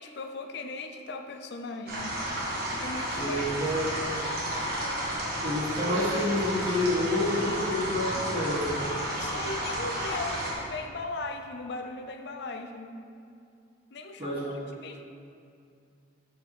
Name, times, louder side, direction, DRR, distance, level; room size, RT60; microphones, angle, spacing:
voice 1, 0.0-2.1 2.8-4.3 9.1-12.9 13.9-15.0, left 3 dB, 60° left, 6 dB, 0.5 m, -38 dB
sound 1, 1.9-10.5, right 1 dB, 55° right, 1.5 m, -32 dB
voice 2, 3.1-3.9 5.4-8.8 14.2-14.4, left 1 dB, 30° right, -7 dB, 1.5 m, -28 dB
5.0 x 4.9 x 5.9 m, 2.4 s
head